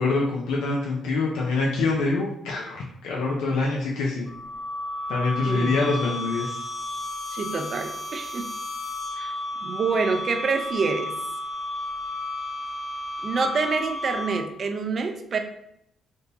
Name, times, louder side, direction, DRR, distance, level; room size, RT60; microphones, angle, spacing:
voice 1, 0.0-4.3 5.1-6.6, left 3 dB, 90° left, -3 dB, 0.5 m, -25 dB
sound 1, 4.3-14.6, left 1 dB, 35° left, 1.5 m, -33 dB
voice 2, 7.3-8.5 9.2-9.3 9.6-11.1 13.2-15.4, right 4 dB, 50° right, 6 dB, 0.4 m, -27 dB
3.6 x 2.7 x 2.6 m, 0.78 s
cardioid pair, 90°, 0 cm